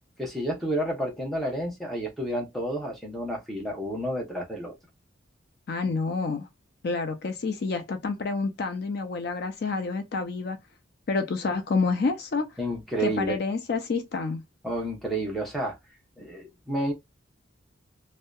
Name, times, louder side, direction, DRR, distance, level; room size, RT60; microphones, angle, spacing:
voice 1, 0.2-4.7 12.6-13.4 14.6-15.8 16.2-16.9, right 1 dB, ahead, 0.7 m, -30 dB
voice 2, 5.7-6.5 6.8-10.6 11.1-12.5 13.0-14.4, left 4 dB, 50° left, 0.4 m, -28 dB
2.6 x 2.1 x 2.2 m
head